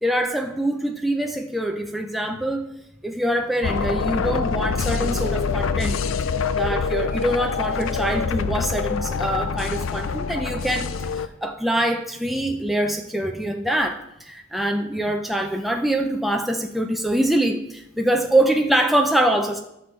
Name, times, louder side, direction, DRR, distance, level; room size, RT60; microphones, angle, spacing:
voice 1, 0.0-2.6 3.0-6.0 6.2-10.9 11.4-19.6, right 1 dB, ahead, 3 dB, 0.4 m, -24 dB
sound 1, 3.6-11.3, left 5 dB, 80° left, 0.4 m, -25 dB
13.0 x 6.2 x 3.1 m, 0.84 s
head